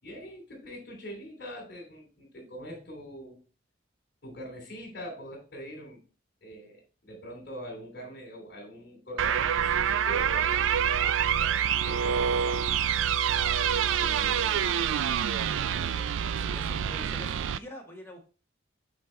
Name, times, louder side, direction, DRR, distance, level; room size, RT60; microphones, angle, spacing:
voice 1, 0.0-3.4 4.2-6.0 6.4-12.2 13.7-14.6, equal, 65° left, -2 dB, 3.1 m, -44 dB
sound 1, 9.2-17.6, right 8 dB, 85° right, 0.3 m, -26 dB
voice 2, 15.9-18.3, equal, 15° left, -1 dB, 1.7 m, -46 dB
7.7 x 4.7 x 3.2 m, 0.36 s
head